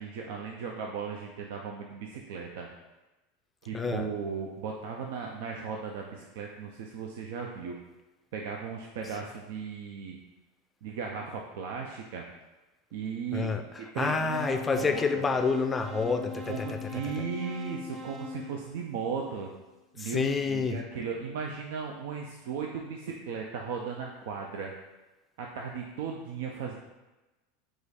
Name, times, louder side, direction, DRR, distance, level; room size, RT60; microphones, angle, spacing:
voice 1, 0.0-2.7 3.6-7.7 8.3-10.2 10.8-12.2 12.9-13.5 13.9-15.3 16.5-19.5 20.0-24.7 25.4-26.7, right 6 dB, 70° right, 1 dB, 0.4 m, -36 dB
voice 2, 3.7-4.1 13.3-17.2 20.0-20.8, left 4 dB, 20° left, 7 dB, 0.4 m, -29 dB
sound 1, 14.3-19.4, left 3 dB, 30° right, 0.6 m, -41 dB
4.7 x 2.4 x 4.1 m, 1.1 s
hypercardioid pair, 100°, 0 cm